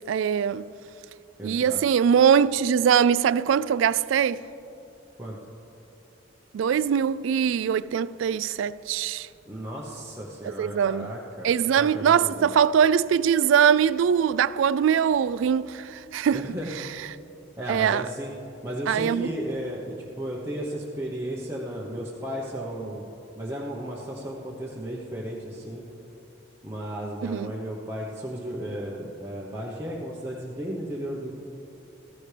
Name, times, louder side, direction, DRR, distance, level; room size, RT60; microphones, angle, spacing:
voice 1, 0.1-0.6 1.4-4.4 6.5-9.3 10.4-11.1 11.4-16.5 17.7-18.0 18.9-19.3 27.2-27.5, right 8 dB, 80° right, 0.3 m, -22 dB
voice 2, 1.4-1.8 5.2-5.4 9.5-11.5 11.8-12.5 16.3-16.7 17.6-18.3 18.6-23.0 23.4-25.8 26.6-31.3, equal, 15° right, 0.9 m, -34 dB
14.5 x 14.5 x 3.3 m
head